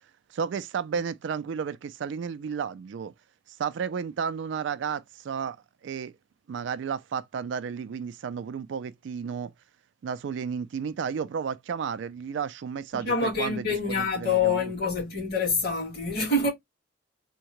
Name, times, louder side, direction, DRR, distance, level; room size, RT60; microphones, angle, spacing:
voice 1, 0.3-3.1 3.5-5.6 5.8-6.1 6.5-9.5 10.0-14.7, right 6 dB, 65° right, 0.3 m, -32 dB
voice 2, 12.9-16.5, left 4 dB, 50° left, 2.1 m, -26 dB
3.5 x 2.1 x 2.9 m
head